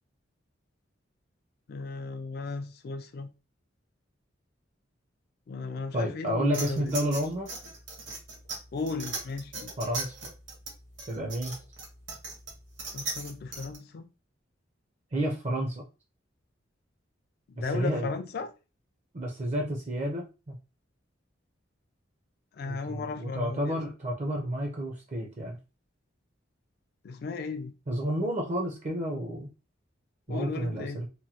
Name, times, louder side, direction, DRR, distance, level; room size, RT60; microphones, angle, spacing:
voice 1, 1.7-3.3 5.5-6.9 8.7-9.7 12.9-14.1 17.5-18.5 22.5-23.8 27.0-27.7 30.3-31.0, left 4 dB, 55° left, 0.3 m, -35 dB
voice 2, 5.9-7.5 9.8-10.2 11.1-11.5 15.1-15.9 17.6-18.1 19.1-20.6 22.7-25.6 27.9-29.5 30.3-31.1, right 1 dB, 35° right, 0.5 m, -31 dB
sound 1, 6.5-13.8, right 3 dB, 70° right, 1.1 m, -38 dB
2.9 x 2.2 x 2.7 m
head